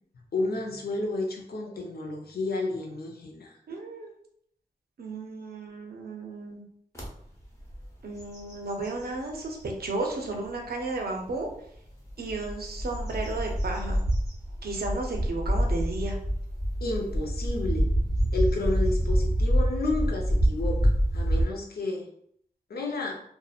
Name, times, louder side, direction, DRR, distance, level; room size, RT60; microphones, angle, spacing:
voice 1, 0.1-3.5 16.8-17.9 18.3-22.1 22.7-23.2, left 2 dB, 85° left, 1 dB, 0.5 m, -31 dB
voice 2, 3.7-4.1 5.0-6.6 8.0-11.5 12.2-14.0 14.6-16.2, right 2 dB, 80° right, 1 dB, 0.6 m, -33 dB
sound 1, 7.0-7.1 7.6-7.8 8.2-9.7 10.3-10.4 12.1-21.4, equal, 20° left, 0.8 m, -26 dB
2.7 x 2.0 x 2.3 m, 0.68 s
wide cardioid pair, 75°, 16 cm